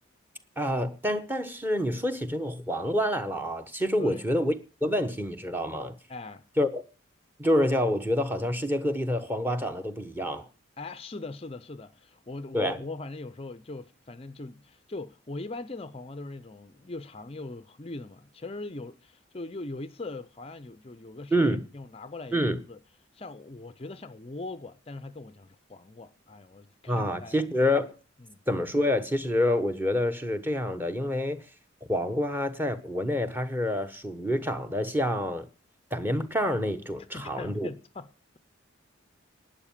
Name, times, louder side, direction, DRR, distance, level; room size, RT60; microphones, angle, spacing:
voice 1, 0.6-4.5 4.8-5.9 6.6-6.8 7.4-10.5 12.5-12.8 21.3-21.6 22.3-22.6 26.9-27.9 28.5-31.4 31.9-35.5 35.9-37.7, left 1 dB, 10° right, 1.1 m, -27 dB
voice 2, 6.1-6.4 10.8-22.8 23.1-27.5 28.3-28.4 37.1-38.1, left 2 dB, 30° left, 0.5 m, -41 dB
12.5 x 9.1 x 7.2 m
head